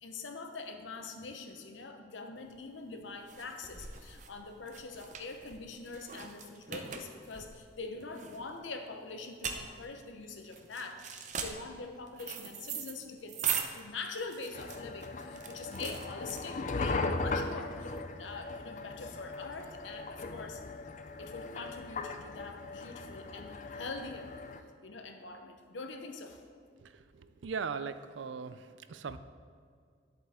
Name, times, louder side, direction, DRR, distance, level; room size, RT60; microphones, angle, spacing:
voice 1, 0.0-20.6 21.2-24.3 24.8-26.4, left 3 dB, 90° left, 5 dB, 0.9 m, -44 dB
sound 1, 2.5-16.8, right 7 dB, 40° right, 0.6 m, -41 dB
sound 2, 14.5-24.6, left 3 dB, 40° left, 0.4 m, -38 dB
voice 2, 26.8-29.2, right 5 dB, 85° right, 12 dB, 0.4 m, -39 dB
10.5 x 7.8 x 3.6 m, 2.2 s
head